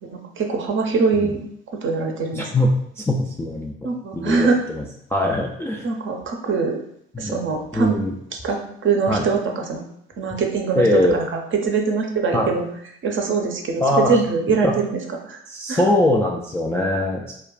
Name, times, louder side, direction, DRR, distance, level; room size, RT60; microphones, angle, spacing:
voice 1, 0.0-2.5 3.8-4.6 5.8-6.8 7.2-8.0 8.3-9.8 10.2-12.7 13.0-15.0 15.3-15.4 15.7-15.9, right 4 dB, 35° right, 2 dB, 0.6 m, -23 dB
voice 2, 2.3-2.7 3.0-4.5 4.8-4.9 5.1-5.9 7.1-7.4 7.7-8.1 9.1-9.2 10.8-11.2 12.3-12.5 13.8-14.2 14.6-14.7 15.5-17.4, left 1 dB, 10° left, -2 dB, 0.3 m, -21 dB
2.2 x 2.2 x 3.8 m, 0.72 s
figure-of-eight pair, 50°, 33 cm